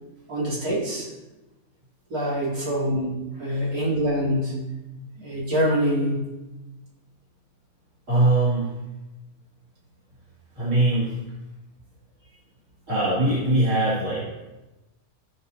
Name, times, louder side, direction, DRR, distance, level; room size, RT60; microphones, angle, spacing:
voice 1, 0.3-1.1 2.1-3.1 3.4-4.6 5.2-6.3, equal, 85° right, -6 dB, 2.9 m, -25 dB
voice 2, 3.3-3.7 8.1-8.7 10.5-11.2 12.9-14.5, right 2 dB, 55° right, -10 dB, 2.6 m, -22 dB
14.5 x 5.2 x 2.7 m, 1.0 s
omnidirectional pair, 1.5 m